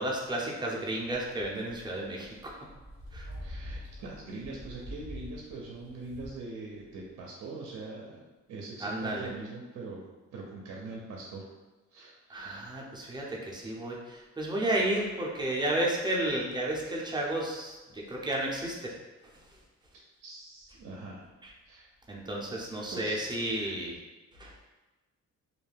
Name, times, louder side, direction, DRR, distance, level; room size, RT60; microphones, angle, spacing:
voice 1, 0.0-2.5 3.1-3.3 8.8-9.3 12.3-18.9 21.4-21.5 22.1-23.9 24.4-24.5, right 1 dB, 15° right, -3 dB, 0.6 m, -32 dB
sound 1, 1.0-6.3, equal, 50° left, 0.9 m, -45 dB
voice 2, 3.4-8.2 8.5-11.5 11.9-12.6 19.9-21.2 21.7-21.9 22.9-23.2 23.6-23.7, right 3 dB, 65° right, -2 dB, 0.6 m, -42 dB
2.5 x 2.2 x 3.3 m, 1.2 s
cardioid pair, 90°, 30 cm